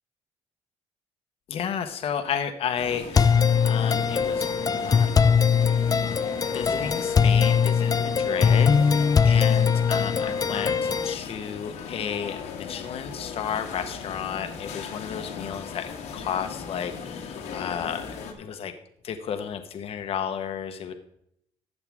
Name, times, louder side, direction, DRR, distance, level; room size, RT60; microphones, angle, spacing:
voice 1, 1.5-4.5 4.8-5.2 6.5-18.1 18.4-18.7 19.0-20.9, left 8 dB, 60° left, 7 dB, 1.1 m, -32 dB
sound 1, 2.8-18.3, left 6 dB, 90° left, 1.8 m, -38 dB
sound 2, 3.1-11.1, left 6 dB, 35° left, 0.5 m, -21 dB
13.5 x 7.9 x 3.6 m, 0.73 s
cardioid pair, 95°, 11 cm